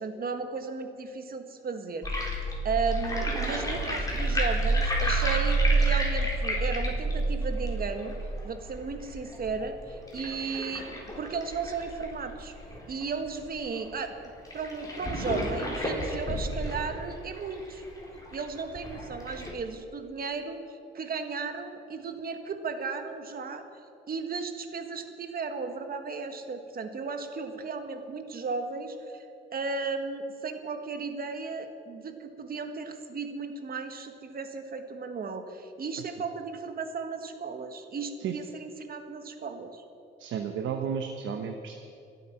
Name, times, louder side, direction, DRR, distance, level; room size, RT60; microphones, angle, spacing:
voice 1, 0.0-8.1 8.4-10.9 11.2-12.5 12.9-14.1 14.5-17.8 18.3-23.6 24.1-29.2 29.5-39.8, right 4 dB, 50° right, 7 dB, 1.6 m, -35 dB
sound 1, 2.0-13.0 13.5-13.6 13.7-13.8 14.4-19.5, right 2 dB, 15° left, 4.0 m, -29 dB
voice 2, 40.2-41.7, right 7 dB, 75° right, 5 dB, 1.1 m, -32 dB
25.0 x 8.3 x 5.9 m, 2.6 s
cardioid pair, 90°, 20 cm